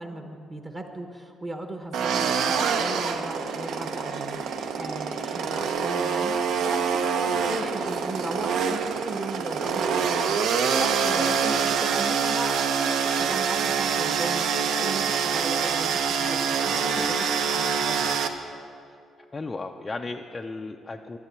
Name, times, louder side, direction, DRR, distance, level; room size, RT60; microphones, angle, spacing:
voice 1, 0.0-10.4 10.8-18.0, right 2 dB, 20° right, 4 dB, 0.8 m, -37 dB
sound 1, 1.9-18.3, right 6 dB, 75° right, 0.9 m, -25 dB
voice 2, 16.7-17.2 17.8-18.2 19.3-21.2, left 3 dB, 15° left, 3 dB, 0.4 m, -36 dB
12.0 x 11.5 x 8.1 m, 2.4 s
cardioid pair, 180°, 0 cm